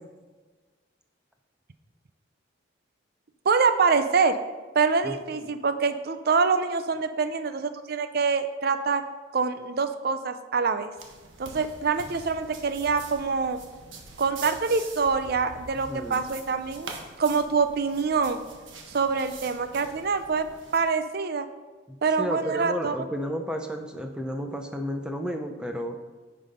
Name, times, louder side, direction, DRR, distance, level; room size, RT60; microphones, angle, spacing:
voice 1, 3.5-4.4 4.7-9.0 9.3-10.9 11.4-13.6 14.2-16.9 17.2-18.4 18.9-21.5 22.0-23.0, right 5 dB, 55° right, 10 dB, 0.6 m, -25 dB
sound 1, 11.0-20.8, right 4 dB, 85° right, 1.4 m, -44 dB
voice 2, 15.9-16.2 21.9-26.0, equal, 5° right, 4 dB, 0.7 m, -32 dB
9.9 x 5.5 x 5.2 m, 1.3 s
head